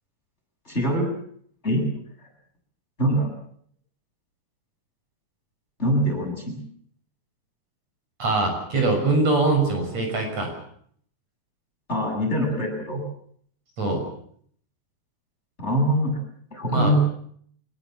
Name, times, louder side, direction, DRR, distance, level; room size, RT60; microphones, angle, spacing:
voice 1, 0.6-1.1 1.6-1.8 3.0-3.3 5.8-6.6 11.9-13.0 15.6-16.2 16.5-17.0, equal, 20° left, 0 dB, 8.2 m, -23 dB
voice 2, 8.2-10.5 13.8-14.0 16.7-16.9, right 3 dB, 60° right, 3 dB, 7.5 m, -22 dB
25.0 x 21.0 x 7.4 m, 0.63 s
omnidirectional pair, 3.4 m